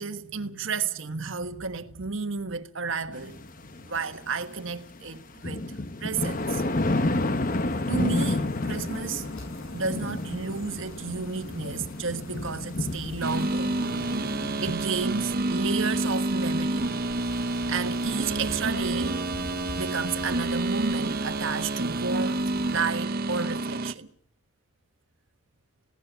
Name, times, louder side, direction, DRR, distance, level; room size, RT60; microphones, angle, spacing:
voice 1, 0.0-3.4 3.8-6.6 7.9-9.3 9.7-13.7 14.6-16.9 17.7-19.2 19.7-24.1, right 5 dB, 65° right, 1.3 m, -32 dB
sound 1, 3.1-4.8 5.2-14.7, left 2 dB, 40° left, 1.0 m, -30 dB
sound 2, 6.1-22.9, left 1 dB, 75° left, 6.0 m, -45 dB
sound 3, 13.2-23.9, right 2 dB, 45° right, 0.8 m, -28 dB
20.5 x 17.0 x 8.1 m
head